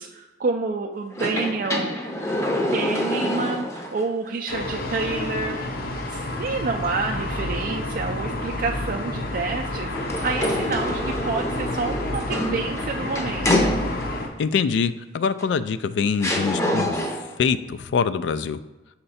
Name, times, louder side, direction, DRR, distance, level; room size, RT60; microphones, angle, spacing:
voice 1, 0.0-2.0 2.7-13.8, right 4 dB, 50° right, 2 dB, 0.4 m, -29 dB
sound 1, 1.1-4.0 4.5-4.6 9.9-14.3 15.4-15.5 16.2-17.4, left 1 dB, 15° left, 0.6 m, -26 dB
sound 2, 4.5-14.3, left 1 dB, 55° left, 0.7 m, -30 dB
voice 2, 14.4-17.0 17.4-18.6, left 6 dB, 70° left, 14 dB, 0.3 m, -24 dB
5.6 x 4.3 x 4.1 m, 1.1 s
head